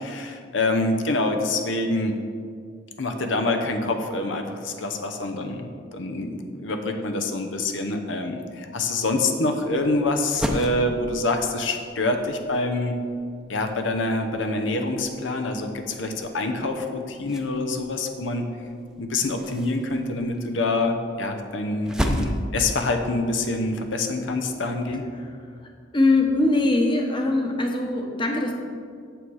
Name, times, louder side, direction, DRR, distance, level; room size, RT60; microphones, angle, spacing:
voice 1, 0.0-2.1 3.0-13.0 13.5-18.5 19.0-25.0, left 2 dB, 85° left, 5 dB, 0.8 m, -26 dB
sound 1, 10.0-24.3, equal, 5° right, 0.6 m, -35 dB
voice 2, 25.9-28.5, left 2 dB, 25° left, 2 dB, 1.0 m, -21 dB
8.9 x 7.2 x 4.8 m, 2.2 s
head